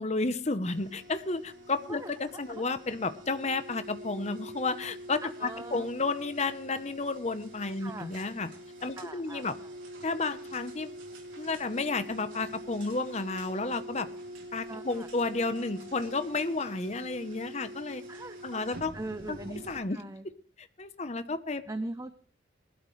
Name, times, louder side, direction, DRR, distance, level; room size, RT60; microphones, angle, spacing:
voice 1, 0.0-8.5 8.8-9.6 10.0-10.9 11.4-14.1 14.5-18.0 18.4-18.9 19.3-19.4 19.7-20.0 20.6-21.6, left 3 dB, 35° left, 11 dB, 0.9 m, -32 dB
sound 1, 0.6-19.8, equal, 90° right, 3.8 m, -45 dB
voice 2, 5.4-5.8 7.8-8.1 9.0-9.4 14.7-15.1 18.1-18.6 18.9-19.6 19.9-20.3 21.7-22.2, right 2 dB, 15° right, 10 dB, 0.6 m, -40 dB
20.5 x 12.0 x 3.2 m, 0.44 s
head